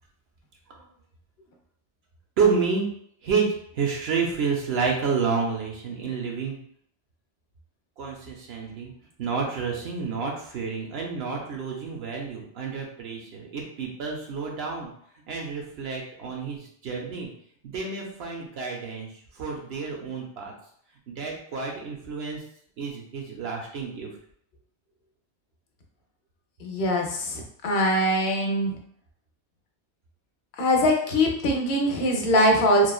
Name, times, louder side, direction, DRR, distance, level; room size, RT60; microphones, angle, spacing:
voice 1, 2.4-2.9 3.2-3.5 3.7-6.6 8.0-8.9 9.2-14.9 15.3-17.3 17.6-19.1 19.3-20.5 21.1-22.4 22.8-24.1, right 5 dB, 70° right, 0 dB, 0.8 m, -29 dB
voice 2, 26.6-28.7 30.6-32.9, equal, 70° left, 2 dB, 0.8 m, -22 dB
3.0 x 2.2 x 2.2 m, 0.65 s
omnidirectional pair, 1.2 m